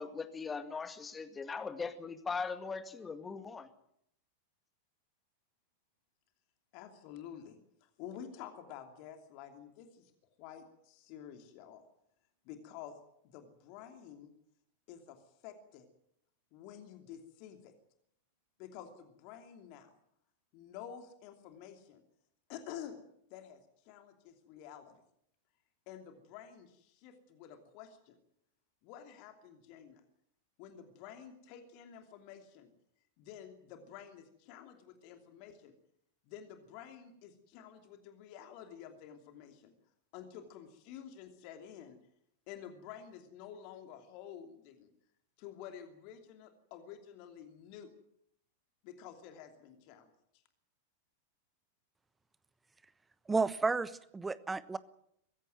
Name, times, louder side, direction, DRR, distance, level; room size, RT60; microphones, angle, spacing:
voice 1, 0.0-3.7, left 5 dB, 15° left, 9 dB, 2.1 m, -40 dB
voice 2, 6.7-10.1 10.4-11.8 12.4-13.0 13.2-14.3 14.9-15.9 16.5-17.7 18.6-19.9 20.5-22.0 22.5-23.0 23.3-25.0 25.9-28.2 28.8-30.0 30.6-32.7 33.2-35.7 36.3-39.7 40.1-42.0 42.5-44.9 45.4-47.9 48.8-50.1, left 9 dB, 45° left, 6 dB, 2.8 m, -50 dB
voice 3, 53.3-54.8, right 4 dB, 10° right, 17 dB, 1.1 m, -32 dB
23.0 x 16.0 x 9.3 m, 0.73 s
figure-of-eight pair, 90°, 0 cm